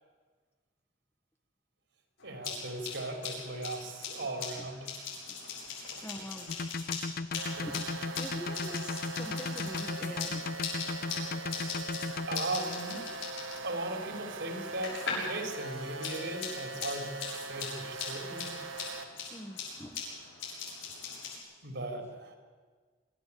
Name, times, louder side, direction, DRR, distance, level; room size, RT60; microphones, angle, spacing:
sound 1, 2.2-15.4 15.7-21.4, left 5 dB, 75° left, 7.8 m, -41 dB
voice 1, 2.2-4.9 5.8-6.0 7.6-8.0 10.7-10.8 11.5-11.6 12.3-13.0 13.6-18.5 20.7-20.8 21.6-22.4, right 2 dB, 65° right, 4 dB, 3.4 m, -38 dB
voice 2, 4.6-4.9 5.3-5.4 5.9-6.5 7.3-7.9 8.2-10.5 19.3-20.0, equal, 15° left, 5 dB, 1.4 m, -45 dB
sound 2, 6.5-12.4, left 3 dB, 50° left, 0.6 m, -35 dB
sound 3, 7.4-19.0, right 3 dB, 90° right, 1.6 m, -42 dB
25.0 x 13.0 x 8.4 m, 1.5 s
head